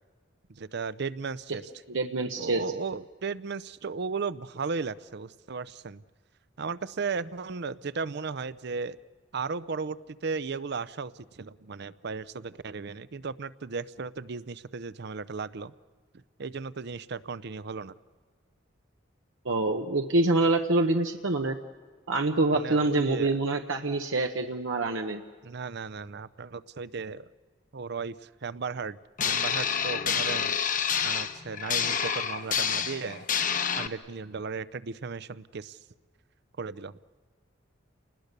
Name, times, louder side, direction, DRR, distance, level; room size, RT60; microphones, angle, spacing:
voice 1, 0.5-1.7 2.4-6.0 6.6-9.0 9.3-15.7 16.4-17.9 22.5-23.3 25.4-27.3 27.7-29.0 29.2-30.5 31.0-33.3 33.8-35.8 36.6-36.9, right 4 dB, 60° right, 17 dB, 0.6 m, -35 dB
voice 2, 1.9-2.6 19.4-21.6 22.1-25.2, right 2 dB, 90° right, 4 dB, 1.1 m, -26 dB
sound 1, 29.2-33.9, left 7 dB, 45° left, 1.0 m, -28 dB
29.5 x 20.0 x 6.7 m, 1.5 s
head